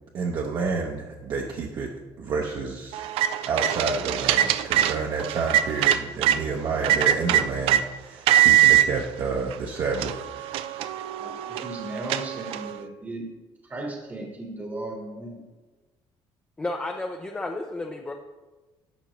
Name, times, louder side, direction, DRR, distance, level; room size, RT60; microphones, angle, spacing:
voice 1, 0.1-1.9 2.2-3.0 3.4-10.5, right 4 dB, 50° right, 0 dB, 0.8 m, -29 dB
sound 1, 2.9-6.4 6.8-7.8 8.3-8.9 9.5-9.6 9.9-12.8, right 12 dB, 90° right, 0.4 m, -22 dB
voice 2, 11.2-13.3 13.7-15.4, right 1 dB, 20° right, 1 dB, 1.0 m, -36 dB
voice 3, 16.6-18.1, left 2 dB, 10° left, 3 dB, 0.5 m, -32 dB
11.5 x 7.0 x 3.0 m, 1.2 s
cardioid pair, 145°, 9 cm